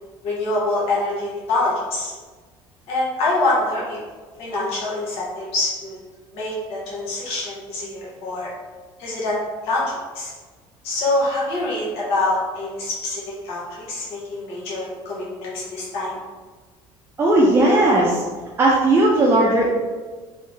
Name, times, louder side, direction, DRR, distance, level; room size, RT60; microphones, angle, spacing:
voice 1, 0.2-2.1 2.9-4.0 4.4-6.0 6.3-8.5 9.0-9.4 9.6-10.3 10.8-16.1, left 2 dB, 65° left, -7 dB, 1.1 m, -25 dB
voice 2, 17.2-18.2 18.6-19.7, right 1 dB, 25° right, -4 dB, 0.5 m, -16 dB
3.3 x 2.8 x 3.1 m, 1.4 s
cardioid pair, 125°, 11 cm